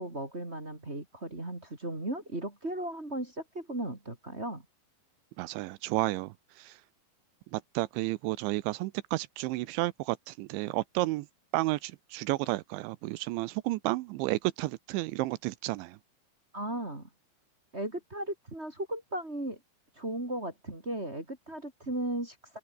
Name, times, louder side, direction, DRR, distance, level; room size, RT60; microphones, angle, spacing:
voice 1, 0.0-4.6 16.5-17.1 17.7-19.6 20.0-22.4, right 1 dB, 15° right, 2.5 m, -36 dB
voice 2, 5.4-6.8 7.5-11.3 11.5-16.0, right 19 dB, 80° right, 2.9 m, -32 dB
open air
omnidirectional pair, 5.5 m